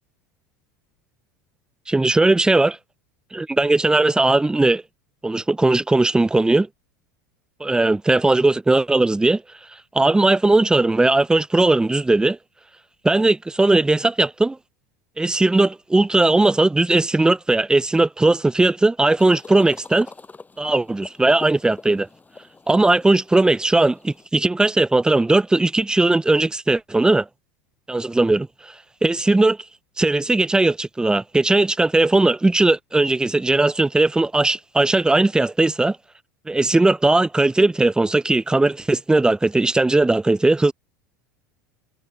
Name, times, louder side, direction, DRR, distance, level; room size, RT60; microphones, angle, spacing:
voice 1, 1.9-2.8 3.3-4.8 5.2-6.7 7.6-9.4 9.9-12.4 13.0-14.6 15.2-20.1 20.6-22.1 22.7-27.3 27.9-28.5 29.0-29.6 30.0-36.0 36.5-40.7, right 2 dB, 10° right, 0.5 m, -18 dB
sound 1, 19.2-24.3, left 3 dB, 15° left, 7.5 m, -43 dB
hypercardioid pair, 85°, 10 cm